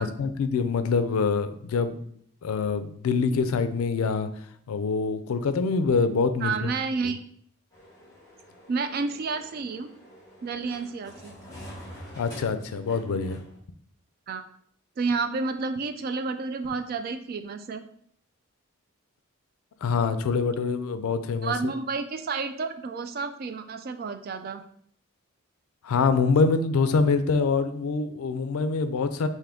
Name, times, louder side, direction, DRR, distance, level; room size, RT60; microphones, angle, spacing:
voice 1, 0.2-2.0 2.4-4.3 4.7-6.7 12.1-13.4 19.8-21.7 25.8-29.3, left 4 dB, 85° left, 11 dB, 0.4 m, -25 dB
voice 2, 6.4-7.2 8.7-9.9 10.4-11.3 14.3-14.4 15.0-17.8 21.4-24.6, right 4 dB, 45° right, 9 dB, 0.3 m, -30 dB
sound 1, 7.7-13.6, equal, 15° left, 1.6 m, -47 dB
3.7 x 2.6 x 3.4 m, 0.63 s
head